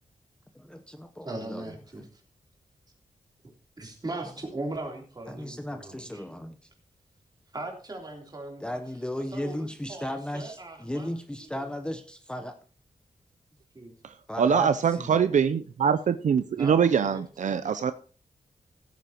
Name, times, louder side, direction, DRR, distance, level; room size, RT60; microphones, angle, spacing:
voice 1, 0.5-1.8 5.3-6.7 8.6-12.6 14.3-15.3, left 1 dB, 5° left, 7 dB, 0.8 m, -36 dB
voice 2, 1.2-2.2 3.8-6.2 7.5-8.6 9.3-11.1 13.7-13.9 16.6-17.6, right 2 dB, 30° right, 1 dB, 3.4 m, -39 dB
voice 3, 14.0-17.9, right 7 dB, 70° right, 10 dB, 0.5 m, -24 dB
16.0 x 9.2 x 2.9 m, 0.38 s
wide cardioid pair, 100°, 13 cm